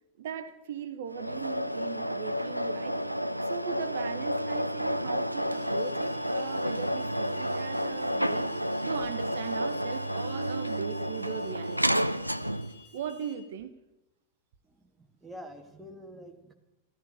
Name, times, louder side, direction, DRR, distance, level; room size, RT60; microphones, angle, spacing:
voice 1, 0.2-3.0 3.4-12.0 12.9-13.7, right 8 dB, 55° right, 10 dB, 1.0 m, -39 dB
sound 1, 1.1-12.8, equal, 90° right, 0.5 m, -31 dB
Alarm, 5.5-13.3, left 6 dB, 45° left, 3.6 m, -55 dB
voice 2, 14.6-16.5, equal, 10° right, 3 dB, 2.2 m, -47 dB
14.5 x 14.0 x 6.5 m, 0.94 s
figure-of-eight pair, 90°, 0 cm